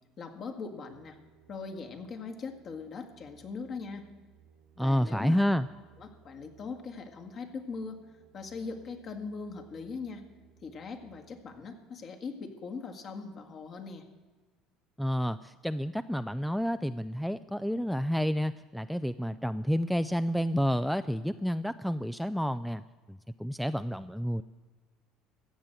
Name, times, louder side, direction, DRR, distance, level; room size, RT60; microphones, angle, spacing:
voice 1, 0.2-1.2 1.5-4.1 4.8-5.5 6.0-8.0 8.3-10.2 10.6-14.1, left 4 dB, 45° left, 5 dB, 1.9 m, -40 dB
sound 1, 0.9-11.5, right 8 dB, 80° right, 1.7 m, -62 dB
voice 2, 4.8-5.7 15.0-22.8 23.1-24.4, equal, ahead, 13 dB, 0.4 m, -30 dB
14.5 x 8.1 x 9.0 m, 1.3 s
supercardioid pair, 105°, 0 cm